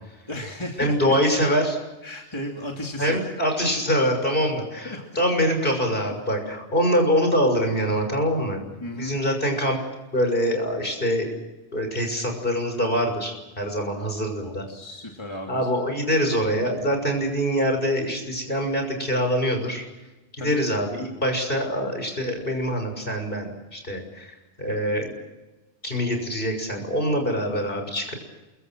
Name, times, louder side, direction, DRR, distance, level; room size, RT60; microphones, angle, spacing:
voice 1, 0.3-1.1 2.0-3.3 4.8-5.0 8.8-9.2 14.4-15.7 20.4-20.8, left 1 dB, 25° left, 0 dB, 2.8 m, -35 dB
voice 2, 0.8-1.8 3.0-8.6 9.0-9.8 10.1-11.3 11.7-14.6 15.5-19.8 20.3-25.1 25.8-28.1, equal, 50° left, 4 dB, 6.7 m, -24 dB
28.5 x 23.5 x 6.3 m, 1.1 s
omnidirectional pair, 1.2 m